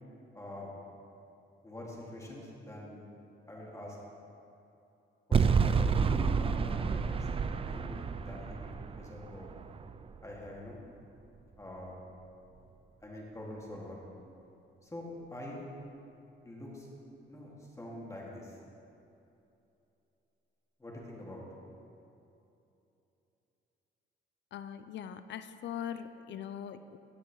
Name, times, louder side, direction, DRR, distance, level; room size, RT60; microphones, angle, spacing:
voice 1, 0.3-0.7 1.6-3.1 3.5-4.0 5.3-7.9 8.2-9.5 10.2-10.8 11.6-12.0 13.0-14.0 14.8-15.6 16.4-16.9 17.3-17.5 17.8-18.5 20.8-21.4, left 1 dB, 15° left, -3 dB, 2.1 m, -45 dB
sound 1, 5.3-10.5, right 5 dB, 30° right, 0.4 m, -30 dB
voice 2, 24.5-27.0, left 9 dB, 65° left, 11 dB, 0.5 m, -41 dB
15.5 x 6.7 x 3.1 m, 2.8 s
cardioid pair, 90°, 20 cm